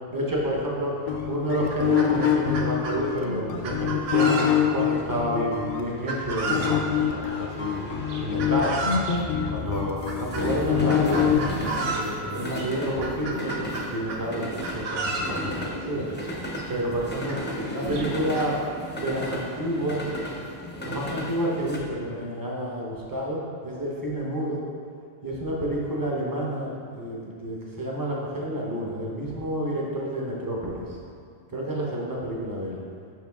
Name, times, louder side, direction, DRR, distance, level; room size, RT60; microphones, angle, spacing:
voice 1, 0.1-1.0 1.3-4.4 4.7-8.8 9.5-11.4 11.9-14.5 14.7-16.1 16.7-17.4 17.7-18.6 19.0-20.0 20.8-24.6 25.2-30.8 31.5-32.8, equal, 20° right, -3 dB, 0.7 m, -29 dB
sound 1, 1.1-5.8 6.5-11.4, left 8 dB, 60° left, 0.6 m, -24 dB
Chicken rooster, 1.1-1.2 1.5-3.0 3.6-4.8 6.1-6.8 8.1-9.2 10.1-10.4 10.9-12.1 12.5-12.7 13.0-14.3 14.6-15.3 16.2-16.3 16.5-16.6 17.3-17.4 17.9-18.5, right 3 dB, 90° right, 1.0 m, -32 dB
sound 2, 2.4-21.8, equal, 15° left, 0.4 m, -35 dB
5.9 x 4.7 x 3.5 m, 2.2 s
omnidirectional pair, 1.2 m